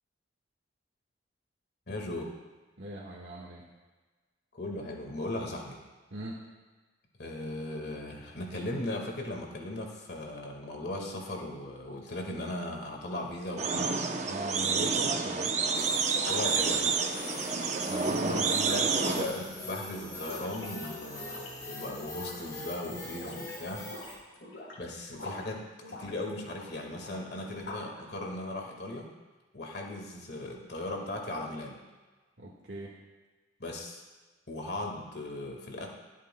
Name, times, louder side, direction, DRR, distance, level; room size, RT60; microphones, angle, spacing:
voice 1, 1.9-2.3 4.5-5.8 7.2-14.0 16.3-16.9 18.2-23.9 24.8-29.1 29.5-31.8 33.6-34.0 34.5-35.9, left 1 dB, 55° left, 1 dB, 1.8 m, -38 dB
voice 2, 2.8-3.6 6.1-6.4 14.3-15.5 17.9-18.9 32.4-32.9, right 1 dB, 70° right, -4 dB, 1.6 m, -39 dB
sound 1, 13.6-19.3, right 4 dB, 35° right, 0.7 m, -29 dB
sound 2, 15.8-24.1, left 2 dB, 20° left, 2.1 m, -43 dB
sound 3, 16.0-22.7 23.0-23.5 23.8-25.5 25.8-28.0, left 2 dB, 75° left, 3.8 m, -44 dB
23.5 x 8.3 x 2.3 m, 1.3 s
head